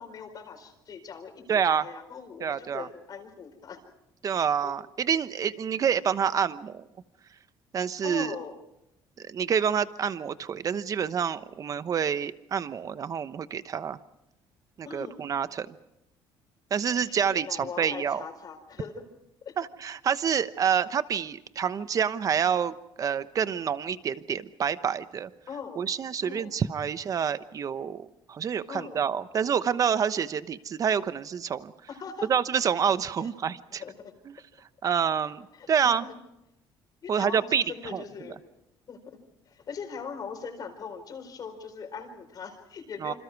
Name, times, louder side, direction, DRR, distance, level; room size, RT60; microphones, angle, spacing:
voice 1, 0.0-3.8 4.6-4.7 8.0-8.5 14.8-15.2 17.1-19.0 19.4-19.5 23.1-23.3 25.5-25.9 26.2-26.5 28.7-29.1 31.9-32.3 33.8-34.1 35.6-36.0 37.0-38.4 38.9-39.2 39.5-43.2, left 6 dB, 45° left, 4 dB, 4.5 m, -40 dB
voice 2, 1.5-1.8 2.4-2.9 4.2-6.9 7.7-8.4 9.2-14.0 14.8-15.7 16.7-18.2 19.6-25.3 25.8-31.7 32.3-33.8 34.3-34.4 34.8-36.0 37.1-37.6 37.9-38.0 43.0-43.1, right 7 dB, 40° right, 13 dB, 1.0 m, -27 dB
27.5 x 26.5 x 4.7 m, 0.85 s
cardioid pair, 130°, 9 cm